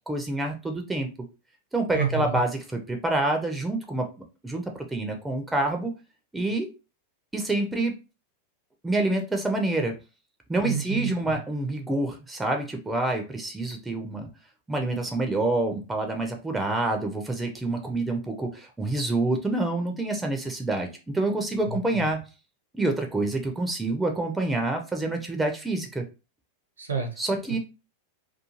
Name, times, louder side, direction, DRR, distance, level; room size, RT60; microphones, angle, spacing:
voice 1, 0.1-1.1 1.7-4.1 4.4-5.9 6.3-6.7 7.3-7.9 8.8-9.9 10.5-14.3 14.7-22.2 22.7-26.0 27.2-27.6, right 2 dB, 10° right, 3 dB, 0.4 m, -27 dB
voice 2, 1.9-2.4 10.6-11.4 21.6-22.0 26.8-27.2, right 6 dB, 75° right, 3 dB, 0.8 m, -30 dB
2.4 x 2.3 x 2.9 m, 0.31 s
figure-of-eight pair, 90°, 0 cm